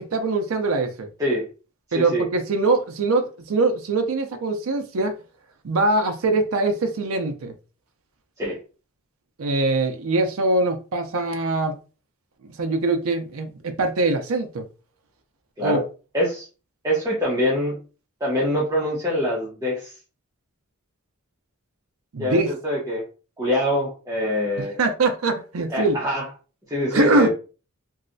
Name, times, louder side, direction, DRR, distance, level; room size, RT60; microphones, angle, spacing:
voice 1, 0.0-1.1 1.9-5.1 5.6-7.5 9.4-11.7 12.6-14.6 15.6-15.8 22.1-22.5 24.6-26.0 26.9-27.3, right 3 dB, 75° right, 0.5 m, -22 dB
voice 2, 16.1-16.5 16.8-17.8 18.2-19.9 22.2-23.0 23.4-24.8 25.7-26.2 26.7-27.3, left 1 dB, 15° right, 0.8 m, -24 dB
3.1 x 2.7 x 2.6 m
head